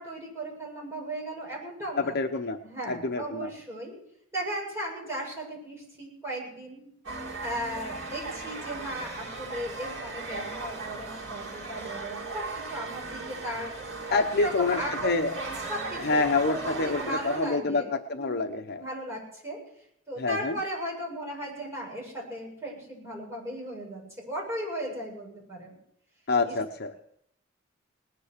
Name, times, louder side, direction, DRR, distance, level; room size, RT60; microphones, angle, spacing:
voice 1, 0.0-2.1 2.6-4.0 4.3-6.9 7.4-12.4 12.7-13.7 14.1-16.3 16.6-17.9 18.2-18.5 18.7-19.6 20.1-25.8 26.5-26.6, right 1 dB, 15° right, -4 dB, 7.7 m, -36 dB
voice 2, 2.0-2.6 2.9-3.5 14.1-15.3 16.0-18.8 20.2-20.6 26.3-26.9, left 3 dB, 50° left, 5 dB, 1.0 m, -27 dB
sound 1, 7.0-17.6, right 3 dB, 60° right, 3.0 m, -37 dB
19.5 x 9.9 x 6.7 m, 0.72 s
head